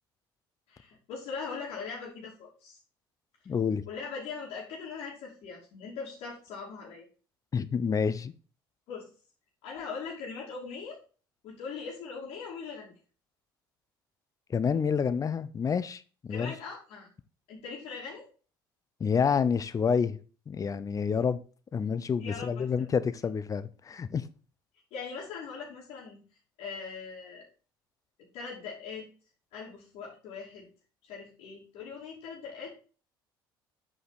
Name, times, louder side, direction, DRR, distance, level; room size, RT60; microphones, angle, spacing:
voice 1, 0.7-2.8 3.9-7.1 8.9-9.1 9.6-11.0 11.4-12.9 16.3-17.1 17.5-18.3 22.2-22.9 24.9-26.2 26.6-27.5 28.3-29.1 29.5-30.7 31.0-32.8, left 5 dB, 60° left, 2.9 m, -41 dB
voice 2, 3.5-3.8 7.5-8.3 14.5-16.5 19.0-20.2 20.5-21.4 21.7-24.2, left 6 dB, 30° left, 0.7 m, -28 dB
7.9 x 5.1 x 4.1 m
figure-of-eight pair, 60°, 11 cm